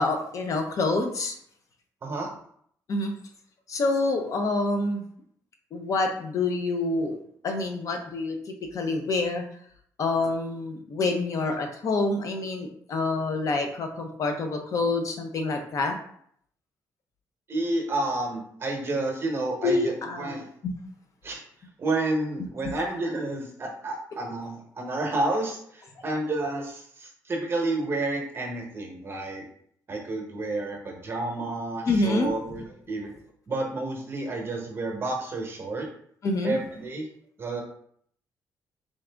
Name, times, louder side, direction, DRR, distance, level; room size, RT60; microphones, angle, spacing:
voice 1, 0.0-1.4 2.9-3.1 3.7-5.0 5.7-7.2 7.4-8.4 8.7-9.4 10.0-16.0 19.6-20.4 20.6-20.8 31.9-32.3 36.2-36.6, left 2 dB, 55° left, 4 dB, 0.6 m, -27 dB
voice 2, 17.5-20.4 21.2-21.4 21.8-29.4 29.9-33.1 33.5-35.9 36.4-37.1 37.4-37.6, right 2 dB, 35° right, 2 dB, 0.9 m, -30 dB
4.0 x 2.5 x 3.4 m, 0.64 s
cardioid pair, 120°, 7 cm